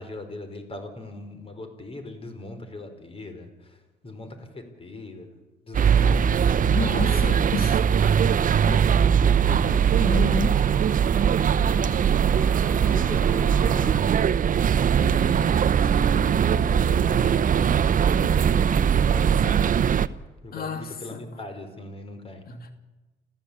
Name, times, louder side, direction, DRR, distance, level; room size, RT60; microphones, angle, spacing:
voice 1, 0.0-5.4 5.6-8.4 8.7-10.0 10.4-10.5 11.2-12.1 12.5-14.1 15.1-20.1 20.4-22.4, left 2 dB, 30° left, 4.6 m, -41 dB
sound 1, 5.7-20.1, right 8 dB, 50° right, 0.8 m, -21 dB
voice 2, 6.7-7.9 8.7-8.8 10.0-10.7 20.5-21.3 22.5-22.7, left 5 dB, 55° left, 2.8 m, -31 dB
sound 2, 7.8-14.0, right 1 dB, 5° right, 5.8 m, -43 dB
29.5 x 14.5 x 8.6 m
cardioid pair, 105°, 18 cm